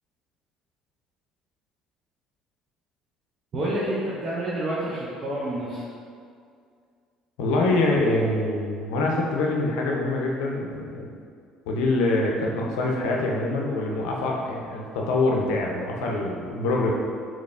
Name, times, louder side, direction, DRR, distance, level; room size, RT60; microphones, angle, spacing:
voice 1, 3.5-5.8, right 1 dB, 45° right, -8 dB, 0.7 m, -28 dB
voice 2, 7.4-11.1 11.7-16.9, left 2 dB, 70° left, -1 dB, 0.5 m, -25 dB
4.1 x 3.1 x 3.2 m, 2.2 s
figure-of-eight pair, 55°, 0 cm